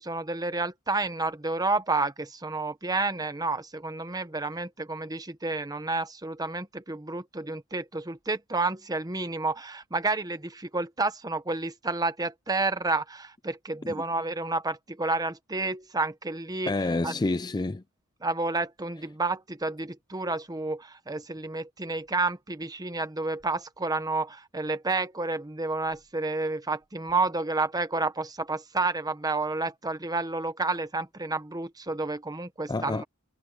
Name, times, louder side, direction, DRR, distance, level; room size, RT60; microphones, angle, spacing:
voice 1, 0.0-16.7 17.0-17.2 18.2-33.0, right 3 dB, 20° right, 1.0 m, -30 dB
voice 2, 16.7-17.8 32.7-33.0, left 2 dB, 20° left, 0.4 m, -28 dB
head